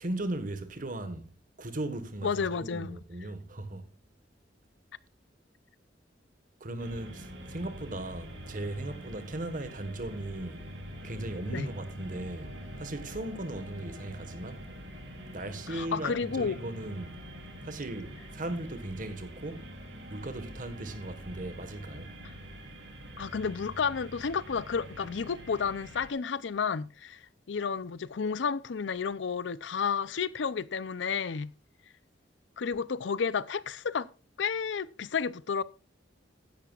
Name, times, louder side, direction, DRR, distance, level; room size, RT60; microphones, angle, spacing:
voice 1, 0.0-1.3 1.6-3.9 6.6-10.7 11.0-14.7 15.3-17.2 17.6-19.7 20.1-22.1, right 2 dB, 50° right, 1.4 m, -37 dB
voice 2, 2.2-3.0 11.5-11.7 15.7-16.6 23.2-27.2 27.5-31.5 32.6-34.1 34.4-35.6, left 6 dB, 80° left, 0.5 m, -31 dB
sound 1, 6.8-26.1, equal, 75° right, 2.7 m, -45 dB
15.0 x 11.0 x 2.4 m
head